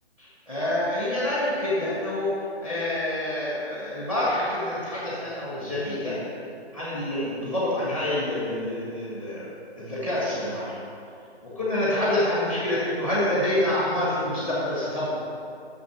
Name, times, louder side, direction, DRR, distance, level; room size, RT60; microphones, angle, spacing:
voice 1, 0.2-2.3 2.6-6.2 6.7-9.5 9.8-10.8 11.4-15.1, left 1 dB, 5° right, -8 dB, 0.9 m, -27 dB
6.3 x 6.1 x 5.9 m, 2.5 s
hypercardioid pair, 170°, 33 cm